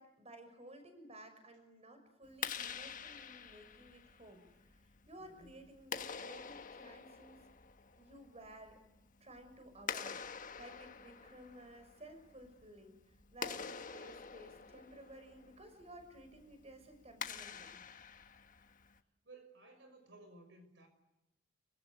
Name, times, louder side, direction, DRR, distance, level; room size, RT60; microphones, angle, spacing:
voice 1, 0.0-4.5 5.1-7.4 8.0-8.8 9.2-13.0 13.3-17.8, right 1 dB, 35° right, 8 dB, 6.0 m, -55 dB
Clapping, 2.2-19.0, left 6 dB, 45° left, 1.4 m, -47 dB
voice 2, 5.2-5.6 19.2-20.9, right 2 dB, 70° right, 8 dB, 5.6 m, -58 dB
27.0 x 25.0 x 8.2 m, 0.92 s
head